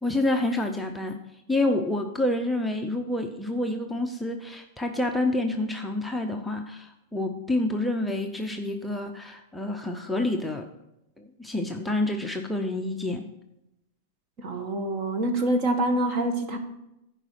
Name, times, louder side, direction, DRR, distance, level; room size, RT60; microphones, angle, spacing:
voice 1, 0.0-1.2 1.5-10.7 11.2-13.2, left 2 dB, 5° left, 2 dB, 0.6 m, -28 dB
voice 2, 14.4-16.6, right 1 dB, 40° right, 6 dB, 1.4 m, -26 dB
10.5 x 5.0 x 6.3 m, 0.89 s
supercardioid pair, 140°, 0 cm